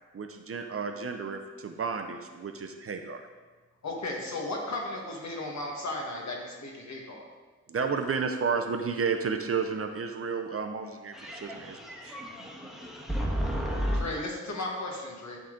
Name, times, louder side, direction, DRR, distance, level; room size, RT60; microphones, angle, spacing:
voice 1, 0.1-3.2 7.7-11.8 12.0-12.1, right 5 dB, 50° right, 5 dB, 0.6 m, -32 dB
voice 2, 3.8-7.2 14.0-15.4, left 2 dB, 65° left, -1 dB, 1.5 m, -35 dB
voice 3, 11.1-14.0, equal, ahead, -3 dB, 1.2 m, -32 dB
11.0 x 3.8 x 3.8 m, 1.3 s
wide cardioid pair, 130°, 30 cm